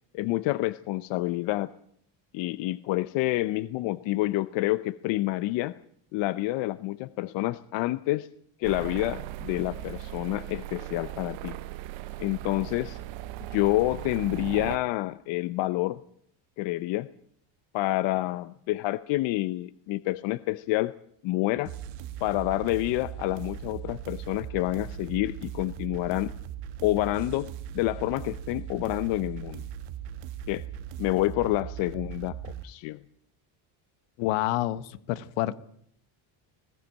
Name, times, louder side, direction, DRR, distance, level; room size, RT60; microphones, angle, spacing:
voice 1, 0.1-1.7 2.3-5.7 6.1-8.3 8.6-11.6 12.2-13.0 13.5-16.0 16.6-17.1 17.7-20.9 21.2-21.7 22.2-26.3 26.8-29.7 30.5-30.6 31.0-32.4 32.6-33.0, left 18 dB, 65° left, 14 dB, 0.8 m, -28 dB
sound 1, 8.6-14.8, right 16 dB, 70° right, 1.0 m, -38 dB
sound 2, 21.6-32.6, right 10 dB, 90° right, 1.4 m, -39 dB
voice 2, 34.2-35.6, left 15 dB, 80° left, 14 dB, 1.3 m, -28 dB
20.0 x 15.5 x 9.0 m, 0.69 s
cardioid pair, 150°, 48 cm